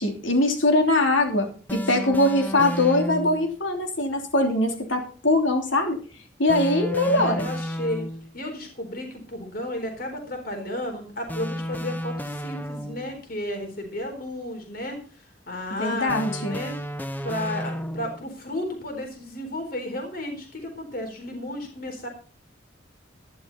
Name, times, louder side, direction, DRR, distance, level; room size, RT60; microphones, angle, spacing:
voice 1, 0.0-6.0 6.4-7.5 15.8-16.6, left 2 dB, 85° left, 3 dB, 3.2 m, -22 dB
sound 1, 1.7-3.5 6.5-8.4 11.3-13.2 16.1-18.3, equal, 10° left, 0.8 m, -32 dB
voice 2, 1.8-2.6 7.0-8.1 8.3-15.0 15.5-16.7 17.2-22.1, left 1 dB, 50° left, 4 dB, 4.1 m, -33 dB
12.0 x 11.5 x 4.1 m, 0.39 s
head